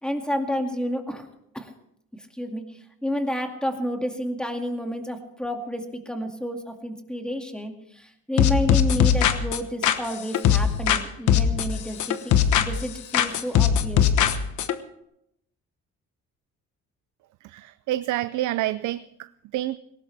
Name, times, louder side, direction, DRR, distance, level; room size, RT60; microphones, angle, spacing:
voice 1, 0.0-1.3 1.5-1.7 2.2-2.6 3.0-14.0, equal, 5° left, 2.2 m, -30 dB
sound 1, 8.4-11.0 11.3-12.9 13.1-14.7, left 8 dB, 75° left, 1.1 m, -20 dB
voice 2, 17.4-19.8, right 15 dB, 80° right, 0.5 m, -28 dB
18.5 x 17.5 x 3.4 m
cardioid pair, 90°, 30 cm